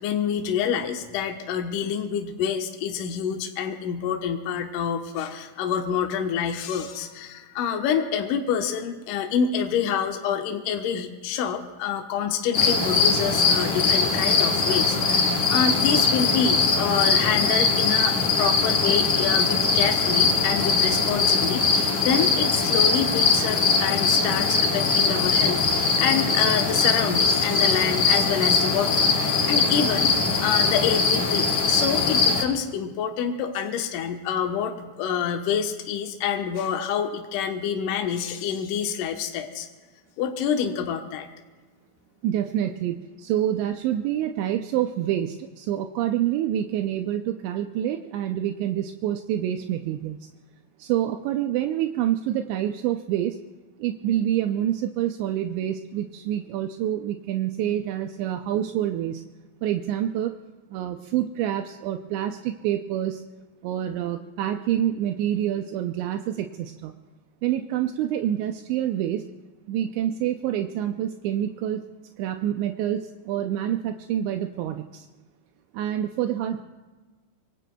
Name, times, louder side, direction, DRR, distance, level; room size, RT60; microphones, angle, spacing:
voice 1, 0.0-30.1 30.4-39.7 40.2-41.3, left 7 dB, 80° left, 3 dB, 1.9 m, -27 dB
sound 1, 12.5-32.4, left 4 dB, 40° left, 2.8 m, -21 dB
voice 2, 42.2-50.2 50.8-53.4 53.8-59.2 59.6-60.3 60.7-63.2 63.6-66.9 67.4-69.2 69.7-71.8 72.2-75.1 75.7-76.6, right 11 dB, 80° right, 5 dB, 2.8 m, -27 dB
25.5 x 24.0 x 2.3 m, 1.2 s
omnidirectional pair, 5.3 m